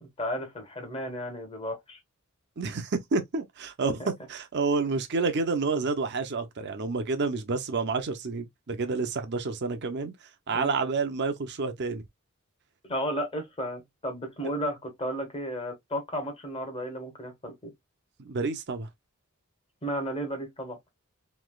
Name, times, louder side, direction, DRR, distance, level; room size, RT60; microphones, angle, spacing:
voice 1, 0.0-2.0 4.0-4.1 10.5-10.7 12.9-17.7 19.8-20.8, equal, 25° left, 1.0 m, -33 dB
voice 2, 2.6-10.1 10.5-12.0 18.2-18.9, right 4 dB, 50° right, 0.6 m, -29 dB
3.2 x 2.9 x 2.2 m
head